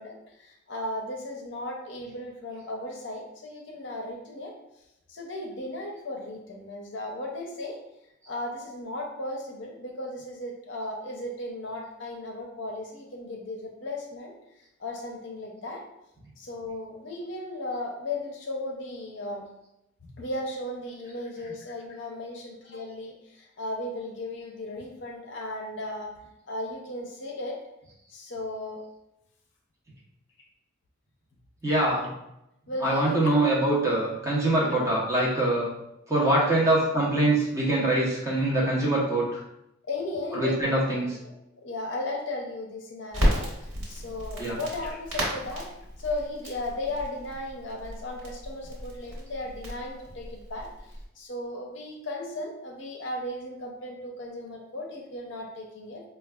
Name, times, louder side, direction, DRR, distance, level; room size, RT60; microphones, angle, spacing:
voice 1, 0.0-4.5 5.1-7.8 8.3-14.3 14.8-15.8 16.4-19.4 20.0-26.1 26.5-27.6 28.1-28.8 32.0-32.1 32.7-33.4 34.6-34.9 39.8-45.7 46.0-50.7 51.2-56.0, left 1 dB, 60° left, 0 dB, 0.6 m, -36 dB
voice 2, 31.6-32.1 32.8-35.7 36.1-39.4 40.3-41.1 44.4-44.6, right 1 dB, 15° right, -6 dB, 0.7 m, -24 dB
Crackle, 43.1-51.0, equal, 85° right, 1.2 m, -33 dB
4.5 x 2.3 x 2.2 m, 0.85 s
head